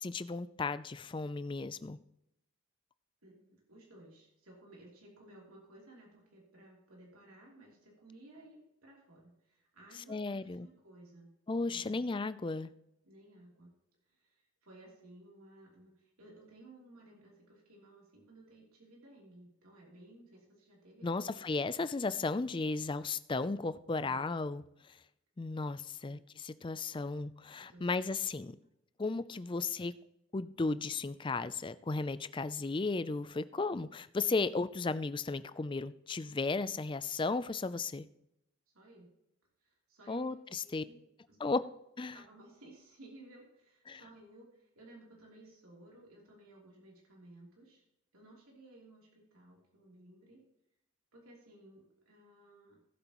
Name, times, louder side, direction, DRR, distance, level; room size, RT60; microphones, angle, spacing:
voice 1, 0.0-2.0 10.1-10.7 11.5-12.7 21.0-25.0 25.4-28.6 29.0-29.9 30.3-38.1 40.1-40.8 41.4-41.6 42.0-42.1 43.9-44.0, left 3 dB, 25° left, 15 dB, 0.4 m, -35 dB
voice 2, 3.2-11.3 11.7-12.0 13.0-13.7 14.1-21.4 24.0-24.3 25.9-26.2 27.6-27.9 29.5-29.7 38.7-39.1 39.6-40.3 40.6-41.0 41.3-41.4 42.1-47.8 48.1-50.4 51.1-52.8, right 1 dB, 90° right, -3 dB, 3.2 m, -57 dB
18.0 x 8.0 x 3.0 m, 0.84 s
head